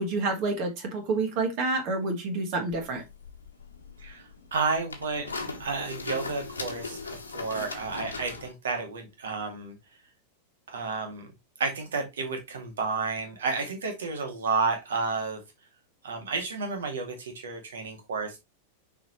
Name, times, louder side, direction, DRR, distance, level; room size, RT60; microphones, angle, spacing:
voice 1, 0.0-3.0, right 3 dB, 45° right, 3 dB, 1.9 m, -28 dB
sound 1, 2.7-8.5, left 4 dB, 75° left, 1.2 m, -39 dB
voice 2, 4.5-9.7 10.7-11.3 11.6-15.4 16.0-18.4, right 4 dB, 65° right, 5 dB, 2.0 m, -31 dB
6.1 x 5.0 x 3.1 m, 0.21 s
figure-of-eight pair, 90°, 0 cm